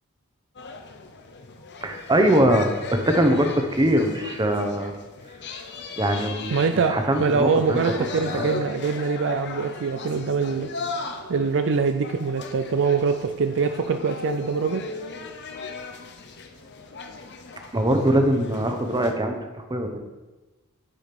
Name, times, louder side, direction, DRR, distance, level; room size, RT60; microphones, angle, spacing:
sound 1, 0.6-19.1, left 4 dB, 50° left, 0.9 m, -37 dB
voice 1, 1.8-4.9 6.0-7.8 8.2-8.5 17.7-20.0, right 1 dB, 20° right, 5 dB, 0.9 m, -22 dB
voice 2, 6.5-10.7 11.3-14.9, right 5 dB, 60° right, 8 dB, 0.5 m, -24 dB
10.0 x 5.1 x 5.9 m, 1.2 s
head